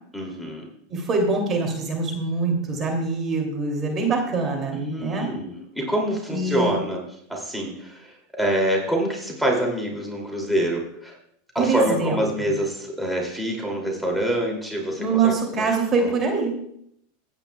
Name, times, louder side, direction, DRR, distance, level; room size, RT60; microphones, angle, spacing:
voice 1, 0.1-0.7 4.7-7.0 7.3-11.1 11.5-15.6 16.0-16.1, right 1 dB, ahead, -1 dB, 2.7 m, -26 dB
voice 2, 0.9-5.3 6.3-6.8 11.6-12.5 15.0-16.6, right 4 dB, 35° right, 2 dB, 2.7 m, -24 dB
15.5 x 9.0 x 2.3 m, 0.72 s
hypercardioid pair, 110°, 0 cm